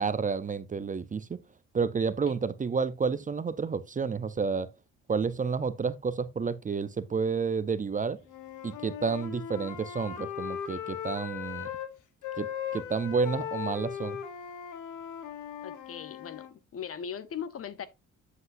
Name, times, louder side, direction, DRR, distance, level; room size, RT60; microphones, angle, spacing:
voice 1, 0.0-1.4 1.7-4.7 5.1-8.2 8.6-11.7 12.4-12.5 12.7-14.2, right 5 dB, 25° right, 0.6 m, -30 dB
Wind instrument woodwind instrument, 8.3-11.9 12.2-16.5, left 9 dB, 85° left, 1.3 m, -38 dB
voice 2, 15.6-17.9, left 8 dB, 50° left, 0.8 m, -39 dB
7.9 x 7.9 x 2.6 m
cardioid pair, 90°, 30 cm